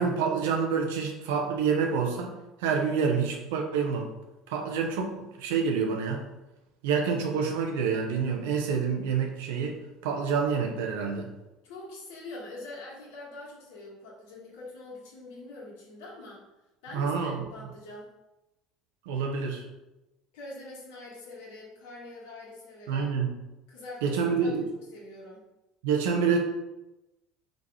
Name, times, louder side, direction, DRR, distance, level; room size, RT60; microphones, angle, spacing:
voice 1, 0.0-2.3 2.6-4.1 4.5-6.2 6.8-11.3 16.9-17.4 19.0-19.6 22.9-23.3 24.0-24.6 25.8-26.4, right 6 dB, 65° right, 2 dB, 1.1 m, -27 dB
voice 2, 11.6-16.4 16.8-18.1 20.3-23.1 23.7-25.4, left 2 dB, 60° left, -3 dB, 1.7 m, -44 dB
5.3 x 4.0 x 4.9 m, 0.98 s
figure-of-eight pair, 65°, 0 cm